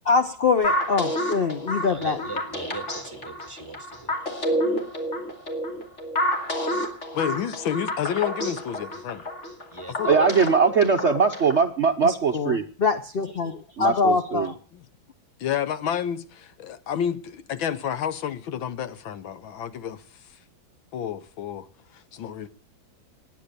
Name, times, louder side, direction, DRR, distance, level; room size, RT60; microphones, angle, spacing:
voice 1, 0.1-2.2 12.0-14.5, left 4 dB, 55° left, 0.6 m, -24 dB
sound 1, 0.6-11.7, equal, 35° left, 3.1 m, -29 dB
voice 2, 1.8-4.1 9.7-10.2, right 2 dB, 15° right, 1.8 m, -39 dB
voice 3, 7.1-9.2 9.9-10.1 14.7-14.9 15.4-20.4 20.9-22.5, left 9 dB, 80° left, 1.8 m, -30 dB
voice 4, 10.1-12.6 13.8-14.5, right 5 dB, 50° right, 0.9 m, -21 dB
19.0 x 10.0 x 6.8 m
omnidirectional pair, 2.2 m